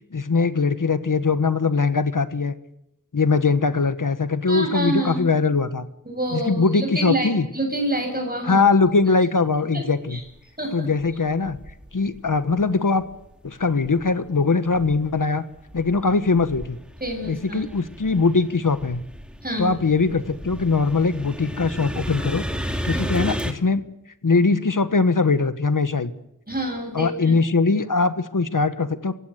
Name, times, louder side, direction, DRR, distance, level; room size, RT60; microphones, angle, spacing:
voice 1, 0.1-2.5 3.1-5.9 6.3-7.5 8.5-10.2 10.7-11.6 11.9-13.0 13.4-15.4 15.7-16.8 17.3-19.0 19.6-22.4 22.8-23.8 24.2-26.1 26.9-29.1, left 4 dB, 80° left, 11 dB, 1.3 m, -21 dB
voice 2, 4.5-5.4 6.1-8.6 9.7-9.8 10.1-10.2 10.6-10.9 17.0-17.6 19.4-19.7 22.9-23.0 26.5-27.3, right 1 dB, 30° right, 2 dB, 7.6 m, -27 dB
sound 1, 10.3-10.4 11.0-12.6 13.0-14.3 14.7-23.5, equal, 5° right, 2.6 m, -33 dB
26.5 x 16.5 x 8.0 m, 0.85 s
wide cardioid pair, 45°, 32 cm